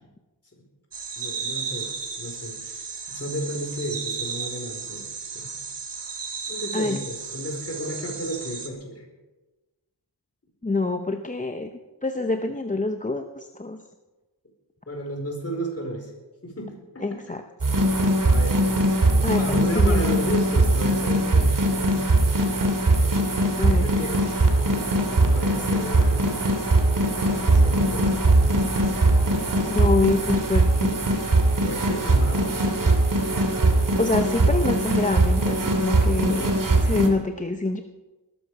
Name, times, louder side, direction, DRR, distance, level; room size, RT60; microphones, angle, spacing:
sound 1, 0.9-8.7, right 5 dB, 75° right, 1.9 m, -34 dB
voice 1, 1.2-5.1 5.3-5.6 6.5-9.1 14.9-16.1 16.4-17.3 18.3-18.6 19.1-22.1 23.6-24.4 25.1-26.3 27.3-28.1 31.6-32.6, equal, 35° left, 2 dB, 4.5 m, -33 dB
voice 2, 10.6-11.7 12.0-13.8 17.0-17.4 19.2-20.2 23.6-23.8 29.7-31.0 34.0-37.8, left 3 dB, 20° left, 6 dB, 0.8 m, -26 dB
sound 2, 17.6-37.1, right 2 dB, 50° right, 2.6 m, -21 dB
sound 3, 24.2-30.1, right 1 dB, 10° right, 6.7 m, -42 dB
19.5 x 13.5 x 4.8 m, 1.2 s
wide cardioid pair, 105°, 42 cm